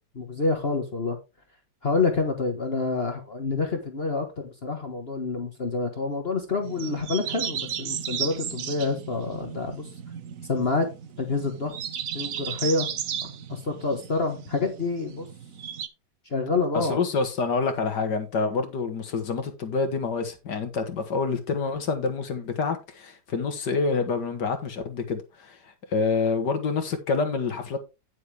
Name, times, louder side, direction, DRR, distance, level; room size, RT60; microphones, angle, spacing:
voice 1, 0.2-1.2 1.8-9.9 10.4-10.9 11.2-11.8 12.1-12.9 13.5-15.3 16.2-17.0, left 3 dB, 35° left, 1.6 m, -27 dB
sound 1, 6.6-15.9, right 8 dB, 60° right, 1.1 m, -35 dB
voice 2, 16.7-25.6 25.9-27.8, left 4 dB, 70° left, 2.1 m, -27 dB
9.8 x 7.6 x 3.5 m
omnidirectional pair, 1.9 m